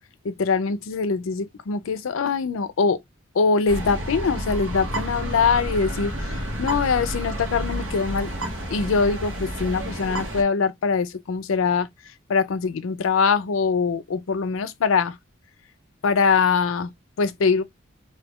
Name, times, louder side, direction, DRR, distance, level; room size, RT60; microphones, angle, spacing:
voice 1, 0.2-3.0 3.3-8.3 8.7-15.2 16.0-16.9 17.2-17.6, left 5 dB, 80° left, 0.4 m, -23 dB
sound 1, 3.7-10.4, equal, 80° right, 1.1 m, -30 dB
2.7 x 2.3 x 3.4 m
head